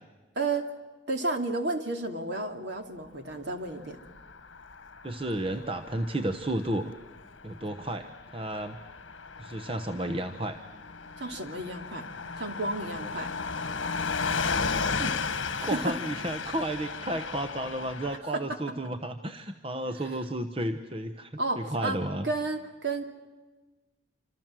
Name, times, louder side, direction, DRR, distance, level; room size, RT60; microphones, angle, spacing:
voice 1, 0.4-0.7 1.1-4.0 11.2-12.1 12.4-13.3 15.6-16.0 18.3-18.6 20.0-20.1 21.4-23.1, right 2 dB, 60° right, 5 dB, 2.7 m, -32 dB
Car passing by / Truck, 3.8-18.2, left 5 dB, 75° left, 1.5 m, -35 dB
voice 2, 5.0-6.9 7.4-8.8 9.4-10.6 15.0-15.2 15.6-22.3, right 1 dB, 30° right, 8 dB, 1.0 m, -32 dB
27.0 x 26.5 x 7.6 m, 1.3 s
head